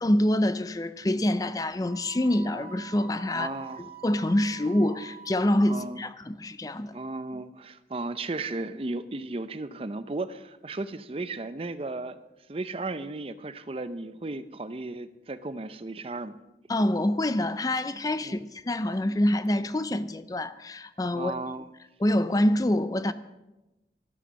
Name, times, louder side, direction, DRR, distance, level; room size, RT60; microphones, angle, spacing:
voice 1, 0.0-3.5 3.8-7.0 16.7-21.3 22.0-23.1, left 1 dB, 20° left, 0.5 m, -26 dB
Wind instrument woodwind instrument, 1.9-6.0, right 7 dB, 15° right, 5.4 m, -46 dB
voice 2, 3.3-3.9 5.7-6.1 6.9-12.2 12.5-16.4 18.2-18.4 21.1-21.7, right 2 dB, 30° right, 0.6 m, -35 dB
12.5 x 12.5 x 6.3 m
head